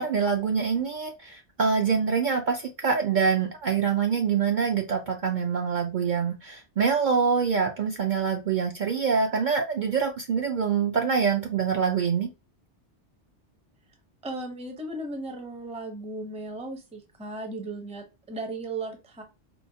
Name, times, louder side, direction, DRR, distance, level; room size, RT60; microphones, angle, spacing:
voice 1, 0.0-12.3, right 6 dB, 60° right, 2 dB, 0.5 m, -25 dB
voice 2, 14.2-19.2, right 2 dB, 10° right, 4 dB, 0.4 m, -36 dB
4.4 x 2.1 x 2.7 m, 0.27 s
omnidirectional pair, 1.2 m